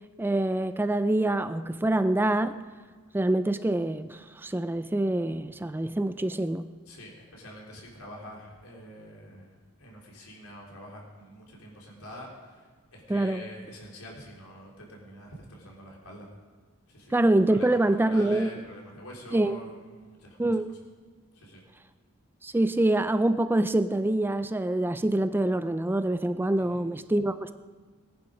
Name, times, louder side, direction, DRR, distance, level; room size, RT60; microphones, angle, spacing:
voice 1, 0.2-2.6 3.1-6.7 13.1-13.4 17.1-18.5 19.3-19.6 20.4-20.7 22.4-27.5, right 1 dB, 10° right, 11 dB, 0.4 m, -25 dB
voice 2, 6.9-16.3 16.9-17.1 17.5-20.8 21.3-21.6 26.6-26.8, equal, 85° left, -2 dB, 3.5 m, -46 dB
19.0 x 11.0 x 5.1 m, 1.5 s
head